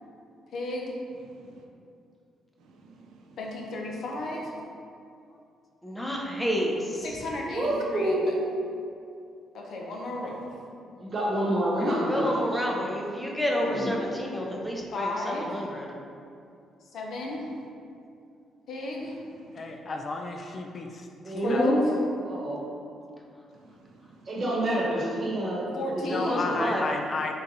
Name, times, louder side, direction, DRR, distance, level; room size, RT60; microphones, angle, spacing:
voice 1, 0.5-0.9 3.4-4.6 7.0-8.3 9.5-10.5 11.8-12.0 14.9-15.7 16.9-17.4 18.7-19.2 21.4-21.9 25.7-26.5, left 2 dB, 65° left, -1 dB, 0.7 m, -34 dB
voice 2, 1.2-1.7 2.6-3.4 19.3-19.8 23.5-24.4, right 3 dB, 85° right, 1 dB, 0.4 m, -55 dB
voice 3, 5.8-7.1 12.0-15.9 26.1-26.9, equal, 10° left, -2 dB, 0.6 m, -30 dB
voice 4, 7.5-8.5 11.0-12.2 12.5-12.7 13.6-13.9 21.2-21.8 22.2-22.6 24.3-25.7 25.9-26.6, right 1 dB, 40° right, -5 dB, 1.1 m, -27 dB
voice 5, 19.5-21.6 26.1-27.3, left 3 dB, 40° left, 4 dB, 0.3 m, -33 dB
4.0 x 2.4 x 4.0 m, 2.5 s
cardioid pair, 90°, 0 cm